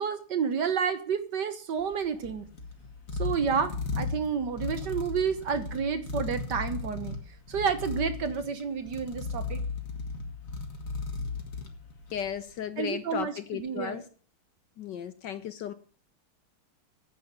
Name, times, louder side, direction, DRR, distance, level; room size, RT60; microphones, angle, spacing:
voice 1, 0.0-2.4 3.2-7.2 7.5-9.6 12.8-14.0, right 6 dB, 55° right, 1.6 m, -30 dB
sound 1, 1.8-12.4, left 4 dB, 40° left, 1.9 m, -36 dB
voice 2, 12.1-14.0 14.8-15.7, left 9 dB, 65° left, 1.2 m, -35 dB
9.6 x 7.8 x 9.3 m
omnidirectional pair, 2.4 m